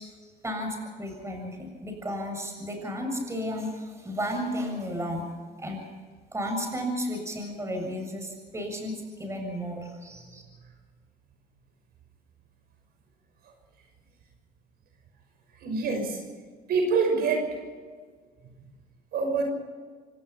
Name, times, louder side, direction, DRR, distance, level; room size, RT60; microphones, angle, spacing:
voice 1, 0.0-5.3 5.6-5.9 6.3-10.4, equal, 15° right, 3 dB, 7.3 m, -33 dB
voice 2, 15.6-16.2 16.7-17.6 19.1-19.4, right 4 dB, 70° right, 4 dB, 6.0 m, -25 dB
26.5 x 18.5 x 5.9 m, 1.6 s
cardioid pair, 110°, 17 cm